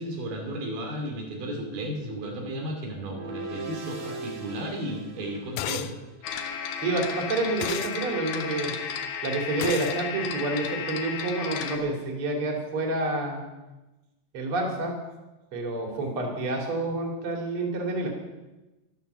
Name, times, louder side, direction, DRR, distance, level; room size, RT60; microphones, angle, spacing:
voice 1, 0.0-5.9, right 1 dB, 85° right, 1 dB, 4.5 m, -34 dB
sound 1, 3.0-6.2, right 3 dB, 65° right, 4.4 m, -40 dB
sound 2, 5.6-5.9 7.6-8.0 9.6-10.0, left 13 dB, 90° left, 1.7 m, -32 dB
sound 3, 6.2-11.8, left 7 dB, 70° left, 2.7 m, -33 dB
voice 2, 6.8-8.7 9.2-13.4 14.3-15.0 15.5-18.1, right 2 dB, 40° right, 1 dB, 3.4 m, -28 dB
13.0 x 12.5 x 6.7 m, 1.1 s
omnidirectional pair, 4.2 m